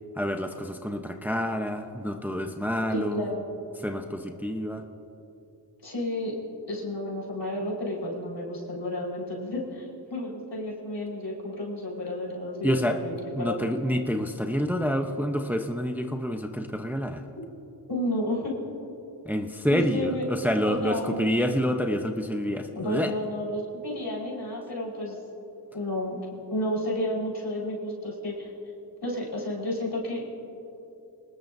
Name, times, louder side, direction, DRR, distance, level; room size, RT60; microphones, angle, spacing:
voice 1, 0.2-3.3 3.8-4.8 12.6-13.0 13.3-17.2 19.3-23.1, equal, 5° right, 4 dB, 0.8 m, -28 dB
voice 2, 2.9-3.4 5.8-6.4 6.7-13.7 17.9-18.5 19.7-20.2 20.6-21.3 22.7-25.2 25.7-26.2 26.5-28.5 29.0-30.3, left 1 dB, 75° left, -3 dB, 4.9 m, -31 dB
27.0 x 19.5 x 2.7 m, 2.9 s
wide cardioid pair, 65°, 42 cm